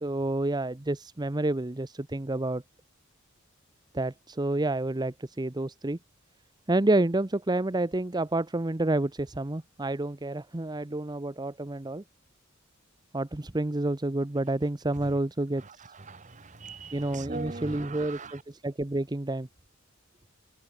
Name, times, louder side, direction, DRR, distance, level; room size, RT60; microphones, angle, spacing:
voice 1, 0.0-2.6 3.9-6.0 6.7-12.0 13.1-15.6 16.9-19.5, right 2 dB, 20° right, 0.8 m, -29 dB
voice 2, 15.6-18.4, right 3 dB, 35° right, 1.4 m, -41 dB
head